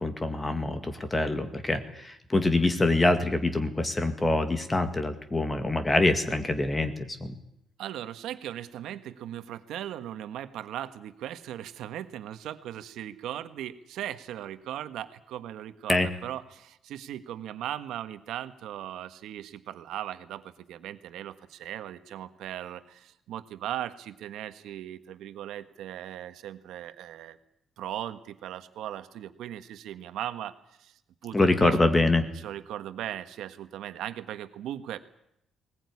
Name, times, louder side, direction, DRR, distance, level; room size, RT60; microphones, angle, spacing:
voice 1, 0.0-7.4 15.9-16.1 31.3-32.3, left 2 dB, 15° left, 8 dB, 1.9 m, -25 dB
voice 2, 7.8-27.4 27.8-30.5 30.8-30.9 31.2-31.8 32.4-35.0, right 11 dB, 85° right, 10 dB, 1.5 m, -38 dB
20.5 x 19.5 x 9.7 m, 0.79 s
cardioid pair, 170°, 0 cm